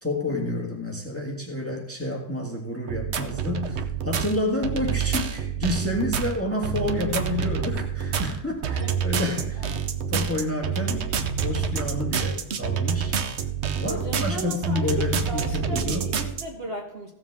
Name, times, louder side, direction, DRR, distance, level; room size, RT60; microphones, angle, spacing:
voice 1, 0.0-9.7 10.1-11.1 11.4-13.2 13.8-16.1, left 2 dB, 10° left, 1 dB, 1.4 m, -29 dB
sound 1, 2.9-16.4, right 7 dB, 55° right, 0.7 m, -27 dB
voice 2, 13.8-17.1, right 2 dB, 35° right, 0 dB, 1.4 m, -36 dB
15.5 x 7.2 x 3.5 m, 0.84 s
omnidirectional pair, 1.9 m